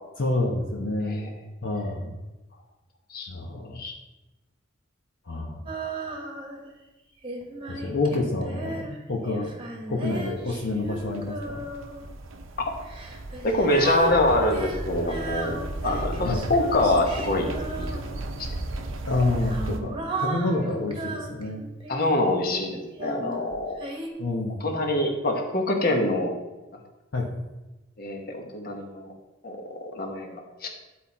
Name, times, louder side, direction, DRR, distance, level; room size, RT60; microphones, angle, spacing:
voice 1, 0.2-1.3 1.6-2.1 3.3-3.8 5.3-5.6 7.7-9.5 9.9-11.6 16.2-16.4 19.1-21.7 24.2-24.8 27.1-27.3, left 2 dB, 65° left, -1 dB, 0.9 m, -28 dB
Female singing, 5.7-6.7 7.2-12.1 12.8-18.4 19.2-22.3 23.0-24.1, right 2 dB, 25° right, 1.1 m, -35 dB
sound 1, 10.2-19.8, right 2 dB, 90° right, 0.8 m, -35 dB
voice 2, 13.4-15.6 15.8-17.9 18.4-18.5 21.9-23.8 24.6-26.3 28.0-29.1 29.4-30.7, left 1 dB, 50° left, 2 dB, 1.2 m, -25 dB
10.5 x 4.3 x 4.2 m, 1.1 s
head